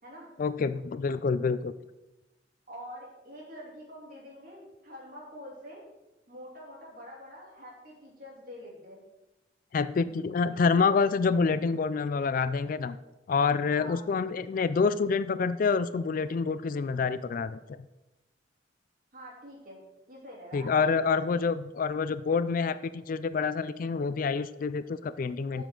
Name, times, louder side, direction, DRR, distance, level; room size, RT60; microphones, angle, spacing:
voice 1, 0.4-1.7 9.7-13.0 13.3-17.8 20.5-25.6, left 5 dB, 50° left, 14 dB, 0.3 m, -27 dB
voice 2, 2.7-5.8 6.3-9.0 13.8-14.1 19.1-19.8 20.1-21.2 25.5-25.6, equal, 50° right, -3 dB, 3.2 m, -46 dB
12.0 x 7.1 x 3.9 m, 1.0 s
head